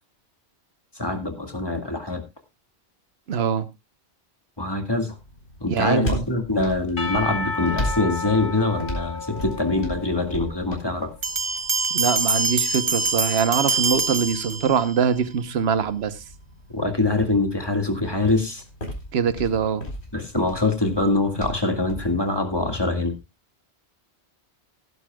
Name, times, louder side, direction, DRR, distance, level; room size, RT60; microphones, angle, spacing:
voice 1, 1.0-2.2 4.6-5.1 5.6-11.1 16.7-18.6 20.1-23.2, left 2 dB, 20° left, 2.0 m, -24 dB
voice 2, 3.3-3.7 5.7-6.2 11.9-16.2 19.1-19.8, right 7 dB, 75° right, 1.2 m, -23 dB
sound 1, 5.1-22.1, left 1 dB, 75° left, 4.4 m, -37 dB
Percussion / Church bell, 7.0-10.9, left 3 dB, 50° left, 2.1 m, -32 dB
sound 2, 11.2-15.0, right 4 dB, 30° right, 0.9 m, -24 dB
17.5 x 11.0 x 2.3 m
omnidirectional pair, 1.1 m